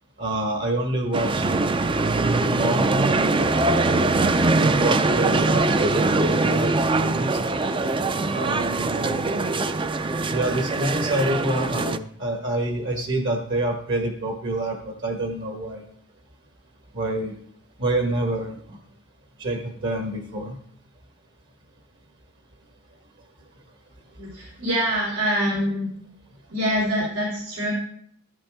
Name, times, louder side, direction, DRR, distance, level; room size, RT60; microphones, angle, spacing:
voice 1, 0.2-1.7 2.4-2.8 3.8-4.3 4.6-7.4 8.3-9.5 10.3-15.8 16.9-17.3 17.8-18.8 19.4-20.6, right 1 dB, 55° right, 3 dB, 1.4 m, -27 dB
sound 1, 1.1-12.0, right 2 dB, 25° right, 0.4 m, -22 dB
voice 2, 24.2-25.9 26.5-27.7, equal, 90° right, -5 dB, 3.9 m, -25 dB
13.0 x 11.5 x 3.6 m, 0.65 s
head